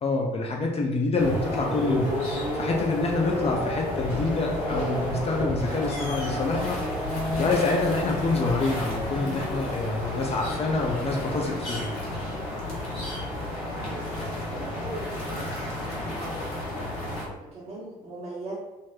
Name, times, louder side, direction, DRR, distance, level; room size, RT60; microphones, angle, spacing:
voice 1, 0.0-6.8 7.3-11.9, left 3 dB, 35° left, 0 dB, 0.5 m, -27 dB
sound 1, 1.1-17.3, left 1 dB, 75° left, 0.8 m, -31 dB
voice 2, 14.5-15.5 16.1-16.6 17.0-18.6, right 1 dB, 60° right, -8 dB, 1.0 m, -39 dB
3.8 x 2.0 x 2.5 m, 1.1 s
figure-of-eight pair, 50°, 18 cm